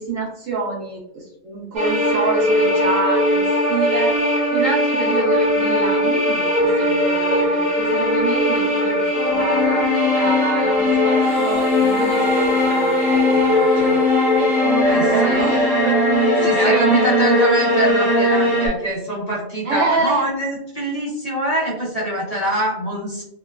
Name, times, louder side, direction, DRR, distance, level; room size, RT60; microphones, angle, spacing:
voice 1, 0.0-4.2 4.5-12.3 12.6-14.0 14.4-14.5 14.9-17.1 19.6-20.2, right 3 dB, 65° right, -2 dB, 1.1 m, -27 dB
sound 1, 1.8-18.7, left 1 dB, 40° right, 1.1 m, -18 dB
Harmonica, 11.2-15.7, equal, 20° left, 0.8 m, -32 dB
voice 2, 14.9-15.5 16.4-23.2, right 1 dB, 40° left, -6 dB, 0.5 m, -24 dB
2.9 x 2.1 x 2.3 m, 0.78 s
omnidirectional pair, 1.5 m